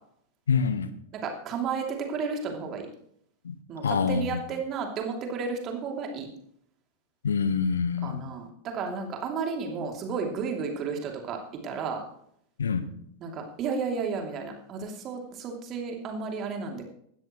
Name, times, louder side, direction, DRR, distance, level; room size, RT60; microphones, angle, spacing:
voice 1, 0.5-0.9 3.4-3.5 3.8-4.4 7.2-8.2 12.6-12.9, left 6 dB, 70° left, 12 dB, 1.1 m, -26 dB
voice 2, 1.1-2.9 3.7-6.3 8.0-12.0 13.2-16.8, right 5 dB, 30° right, 2 dB, 2.9 m, -32 dB
17.0 x 12.5 x 3.1 m, 0.69 s
figure-of-eight pair, 90°, 0 cm